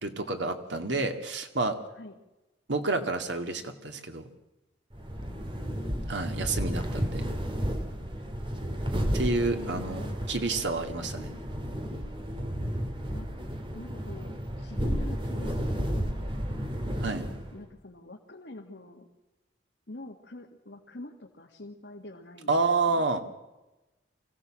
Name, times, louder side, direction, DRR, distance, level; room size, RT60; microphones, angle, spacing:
voice 1, 0.0-1.8 2.7-4.3 6.1-7.2 9.1-11.3 17.0-17.3 22.5-23.2, right 3 dB, 80° right, 6 dB, 2.1 m, -29 dB
sound 1, 4.9-17.7, equal, 30° right, 2.3 m, -32 dB
voice 2, 9.5-10.2 13.1-13.3 13.7-14.3 14.6-16.4 17.5-19.1 19.9-22.6, left 2 dB, 70° left, 0 dB, 1.8 m, -45 dB
25.0 x 16.0 x 7.5 m, 1.1 s
head